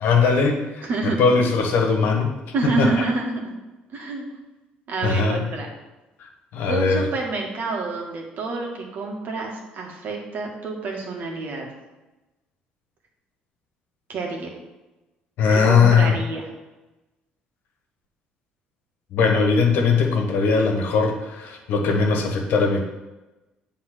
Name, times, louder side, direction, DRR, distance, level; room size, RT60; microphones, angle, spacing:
voice 1, 0.0-2.3 2.8-2.9 5.0-5.4 6.5-7.0 15.4-16.1 19.1-22.8, left 5 dB, 70° left, 2 dB, 1.4 m, -19 dB
voice 2, 0.8-1.2 2.5-3.4 3.9-4.3 4.9-5.7 6.7-11.7 14.1-14.5 15.5-16.5, right 3 dB, 60° right, 0 dB, 1.9 m, -28 dB
7.8 x 3.8 x 6.1 m, 1.1 s
supercardioid pair, 65°, 4 cm